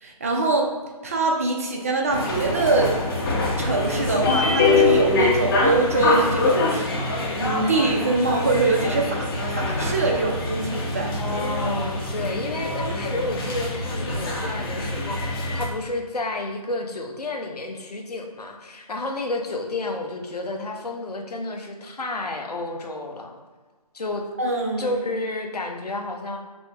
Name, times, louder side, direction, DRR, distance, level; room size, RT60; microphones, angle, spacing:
voice 1, 0.0-0.7 1.0-2.9 3.6-7.0 7.4-11.1 24.4-24.9, right 3 dB, 25° right, 0 dB, 0.4 m, -23 dB
sound 1, 2.1-15.7, left 3 dB, 35° left, 0.7 m, -24 dB
voice 2, 11.2-23.4 23.9-24.3 24.8-26.4, left 2 dB, 90° left, 3 dB, 0.8 m, -31 dB
5.2 x 2.0 x 3.3 m, 1.4 s
figure-of-eight pair, 155°, 19 cm